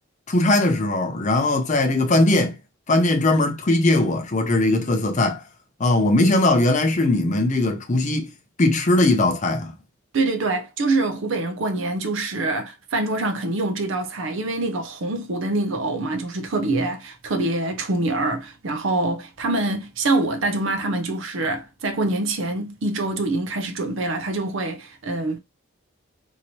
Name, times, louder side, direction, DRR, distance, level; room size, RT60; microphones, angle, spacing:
voice 1, 0.3-2.6 2.9-5.4 5.8-8.3 8.6-9.7, left 2 dB, 35° left, 0.6 m, -19 dB
voice 2, 10.1-25.4, right 2 dB, 60° right, 0.5 m, -25 dB
2.9 x 2.8 x 2.7 m
head